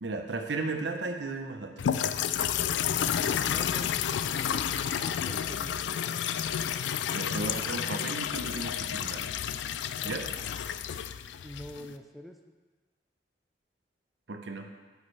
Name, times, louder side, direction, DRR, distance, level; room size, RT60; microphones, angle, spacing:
voice 1, 0.0-1.8 7.1-9.3 10.0-10.3 14.3-14.7, right 3 dB, 75° right, 5 dB, 0.8 m, -35 dB
sound 1, 1.8-11.9, left 9 dB, 80° left, 0.3 m, -31 dB
voice 2, 2.9-5.8 11.4-12.5, equal, ahead, 4 dB, 0.4 m, -45 dB
8.8 x 7.1 x 3.3 m, 1.3 s
head